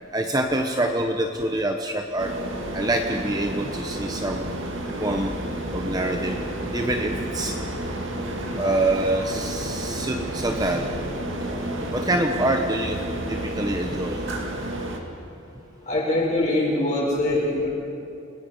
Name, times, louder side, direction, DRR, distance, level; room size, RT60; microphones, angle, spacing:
voice 1, 0.1-2.3 2.7-4.5 5.0-5.4 5.7-6.4 6.7-7.6 8.6-10.9 11.9-13.0 13.3-14.3, right 1 dB, 15° right, 3 dB, 0.9 m, -25 dB
sound 1, 2.2-15.0, right 1 dB, 60° right, 2.4 m, -31 dB
voice 2, 15.9-17.7, left 1 dB, 35° left, -4 dB, 6.6 m, -23 dB
29.0 x 19.0 x 5.5 m, 2.6 s
head